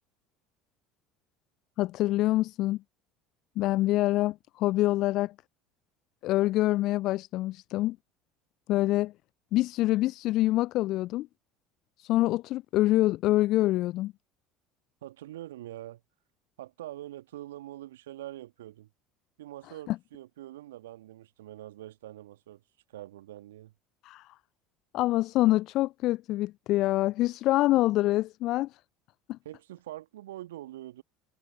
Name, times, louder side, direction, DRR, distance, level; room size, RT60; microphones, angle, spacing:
voice 1, 1.8-2.8 3.6-5.3 6.2-8.0 8.7-9.1 9.5-11.3 12.0-14.1 19.9-20.0 24.0-24.3 24.9-28.7 29.3-29.4, left 16 dB, 50° left, 0.3 m, -26 dB
voice 2, 15.0-16.0 16.6-18.9 19.4-22.6 22.9-23.7 29.4-31.0, right 14 dB, 70° right, 1.6 m, -44 dB
figure-of-eight pair, 65°, 0 cm